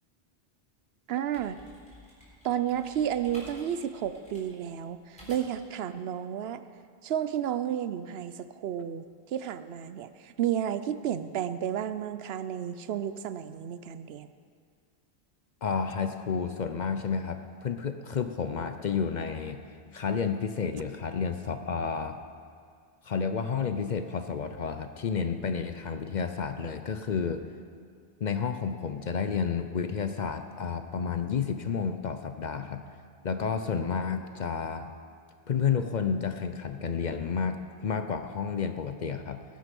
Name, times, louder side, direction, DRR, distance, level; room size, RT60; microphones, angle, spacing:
sound 1, 1.0-5.7, equal, 5° left, 3.7 m, -52 dB
voice 1, 1.1-1.6 2.4-6.6 7.0-14.3, right 10 dB, 70° right, 13 dB, 0.8 m, -32 dB
voice 2, 15.6-19.6 19.9-22.2 23.0-27.4 28.2-32.8 33.2-34.9 35.5-39.4, left 6 dB, 50° left, 8 dB, 0.6 m, -31 dB
19.5 x 7.7 x 5.3 m, 2.2 s
omnidirectional pair, 1.1 m